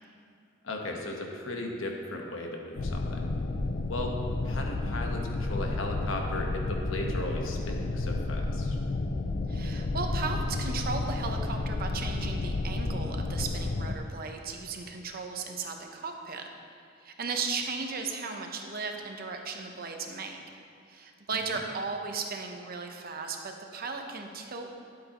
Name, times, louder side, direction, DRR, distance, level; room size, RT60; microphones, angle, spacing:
voice 1, 0.6-3.3 3.9-4.2 4.4-8.8 21.3-21.6, left 2 dB, 75° left, 1 dB, 1.1 m, -36 dB
sound 1, 2.8-14.0, left 2 dB, 45° left, 0.4 m, -31 dB
voice 2, 9.5-16.5 17.0-20.4 20.9-24.7, right 4 dB, 50° right, 3 dB, 0.8 m, -36 dB
11.5 x 8.4 x 3.0 m, 2.3 s
head